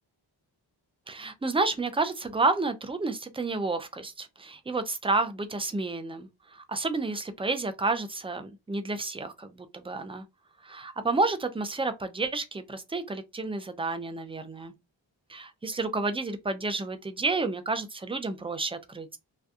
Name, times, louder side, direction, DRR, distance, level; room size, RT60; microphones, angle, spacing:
voice 1, 1.1-10.2 10.6-14.7 15.3-19.2, right 3 dB, 10° right, 0.4 m, -30 dB
2.6 x 2.2 x 2.3 m
cardioid pair, 40°, 48 cm